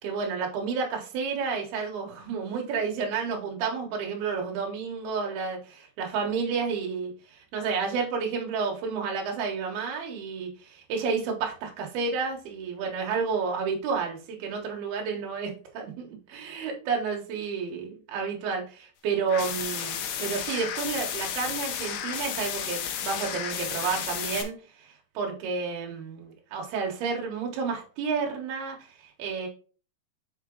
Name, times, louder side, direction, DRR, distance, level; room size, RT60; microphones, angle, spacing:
voice 1, 0.0-29.5, right 5 dB, 80° right, 0 dB, 3.3 m, -31 dB
sound 1, 19.3-24.4, left 9 dB, 90° left, 2.9 m, -33 dB
6.7 x 4.8 x 3.8 m, 0.38 s
omnidirectional pair, 4.5 m